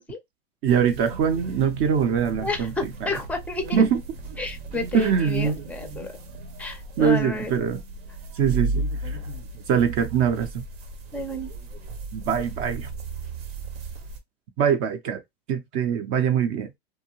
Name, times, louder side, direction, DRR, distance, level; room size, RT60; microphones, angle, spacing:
voice 1, 0.6-2.7 3.0-3.1 3.7-4.0 4.9-5.6 7.0-7.8 8.3-9.2 9.7-10.6 12.1-12.9 14.6-15.2 15.5-16.7, right 7 dB, 40° right, 0.6 m, -23 dB
sound 1, 0.7-14.2, right 3 dB, 75° right, 1.0 m, -35 dB
voice 2, 2.4-3.8 4.4-6.1 6.6-7.5 11.1-11.5, left 2 dB, 5° left, 0.5 m, -31 dB
2.7 x 2.1 x 2.9 m
supercardioid pair, 130°, 31 cm